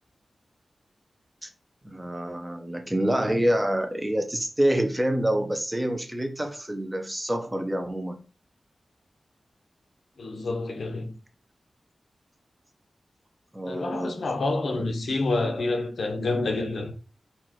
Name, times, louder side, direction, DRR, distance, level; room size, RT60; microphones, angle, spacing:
voice 1, 1.8-8.2 13.5-14.2, right 1 dB, 10° right, 0.8 m, -27 dB
voice 2, 10.2-11.2 13.7-16.9, left 2 dB, 80° left, 1.0 m, -28 dB
4.6 x 2.6 x 4.4 m
wide cardioid pair, 130°, 0 cm